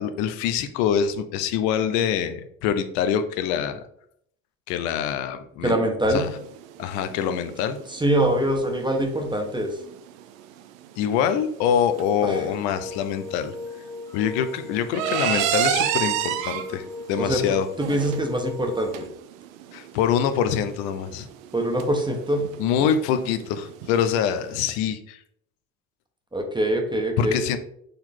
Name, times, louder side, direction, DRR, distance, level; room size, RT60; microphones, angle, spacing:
voice 1, 0.0-3.9 4.7-5.8 6.1-6.3 6.8-7.8 11.0-13.5 14.1-17.7 19.7-21.3 22.6-25.2 27.2-27.6, left 8 dB, 65° left, 9 dB, 0.8 m, -25 dB
voice 2, 5.6-6.3 7.9-9.8 12.2-12.4 17.2-19.1 21.5-22.5 26.3-27.4, right 1 dB, 10° right, 3 dB, 1.5 m, -24 dB
sound 1, 6.0-24.7, right 11 dB, 70° right, 0.7 m, -32 dB
sound 2, 11.7-19.1, left 3 dB, 10° left, 0.4 m, -38 dB
6.6 x 4.4 x 3.8 m, 0.70 s
hypercardioid pair, 55°, 42 cm